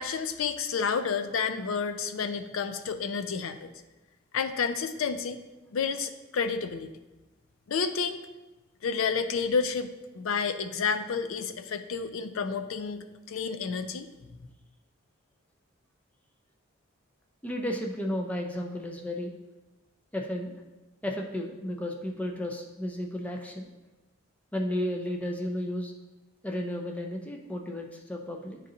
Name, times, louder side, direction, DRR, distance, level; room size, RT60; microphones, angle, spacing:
voice 1, 0.0-3.7 4.3-5.4 5.7-6.9 7.7-8.2 8.8-9.9 10.1-14.1, left 5 dB, 80° left, 9 dB, 0.4 m, -30 dB
voice 2, 17.4-19.3 20.1-20.6 21.0-23.7 24.5-25.9 26.4-28.6, left 1 dB, 5° left, 1 dB, 0.5 m, -33 dB
10.0 x 3.8 x 2.7 m, 1.1 s
head